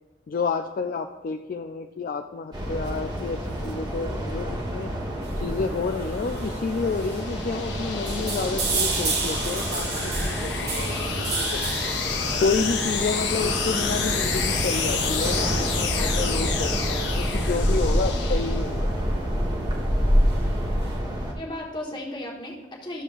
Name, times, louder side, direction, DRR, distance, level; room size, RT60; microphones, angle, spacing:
voice 1, 0.3-4.9 5.4-11.6 12.4-18.9, left 4 dB, 45° left, 5 dB, 0.3 m, -30 dB
sound 1, 2.5-21.3, equal, 25° right, 1.1 m, -28 dB
sound 2, 5.2-21.0, right 4 dB, 60° right, 1.4 m, -35 dB
sound 3, 5.5-19.0, left 6 dB, 65° left, 0.9 m, -31 dB
voice 2, 15.9-16.4 21.3-23.0, left 1 dB, 25° left, -1 dB, 1.2 m, -35 dB
12.5 x 6.8 x 2.4 m, 1.1 s
head